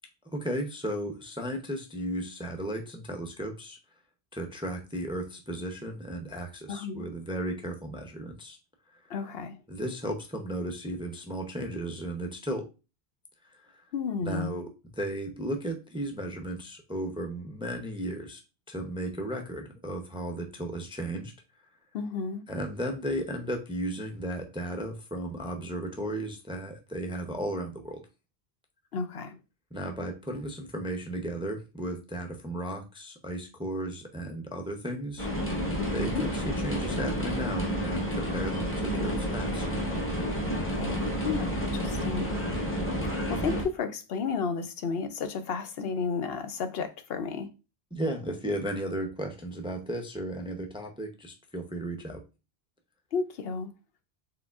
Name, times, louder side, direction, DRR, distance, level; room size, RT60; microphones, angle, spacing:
voice 1, 0.3-3.8 4.3-8.6 8.9-9.0 9.7-12.6 13.5-13.8 14.2-14.7 15.0-18.4 18.7-21.3 22.5-28.0 29.7-35.3 35.9-39.6 47.9-52.2, right 1 dB, 5° right, 0.5 m, -35 dB
voice 2, 6.7-7.1 9.1-9.6 13.9-14.6 21.9-22.4 28.9-29.4 35.8-36.2 40.7-42.3 43.0-47.5 53.1-53.7, left 5 dB, 70° left, 0.8 m, -32 dB
sound 1, 35.2-43.6, equal, 15° left, 1.0 m, -30 dB
4.8 x 3.7 x 2.3 m
omnidirectional pair, 1.0 m